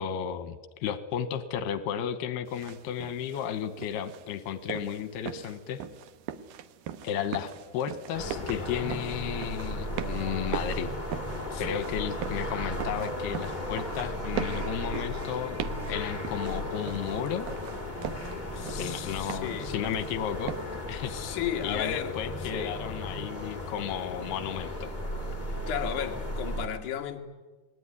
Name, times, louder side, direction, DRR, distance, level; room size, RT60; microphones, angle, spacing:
voice 1, 0.0-5.8 7.0-10.9 11.6-15.6 15.9-17.5 18.7-20.5 20.9-21.1 21.6-24.9, left 9 dB, 90° left, 3.1 m, -33 dB
sound 1, 2.5-20.8, right 10 dB, 70° right, 2.4 m, -41 dB
sound 2, 8.1-26.7, left 1 dB, 15° left, 2.4 m, -35 dB
voice 2, 11.5-11.9 18.5-19.7 21.1-22.8 23.6-23.7 25.7-27.2, left 10 dB, 60° left, 2.9 m, -35 dB
sound 3, 12.4-13.5 14.0-15.6, right 8 dB, 90° right, 4.1 m, -48 dB
29.0 x 20.5 x 9.8 m
omnidirectional pair, 4.5 m